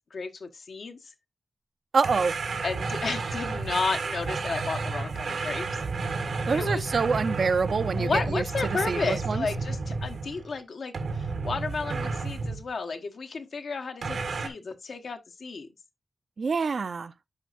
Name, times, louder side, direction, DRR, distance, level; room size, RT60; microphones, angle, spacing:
voice 1, 0.1-1.0 2.6-5.7 6.5-6.9 7.9-15.7, left 4 dB, 75° left, 1.1 m, -32 dB
voice 2, 1.9-2.3 6.5-9.4 16.4-17.1, right 4 dB, 65° right, 0.5 m, -26 dB
sound 1, 2.0-10.5 10.9-12.7 14.0-14.5, right 4 dB, 90° right, 1.5 m, -31 dB
10.5 x 5.1 x 2.4 m
wide cardioid pair, 120°, 0 cm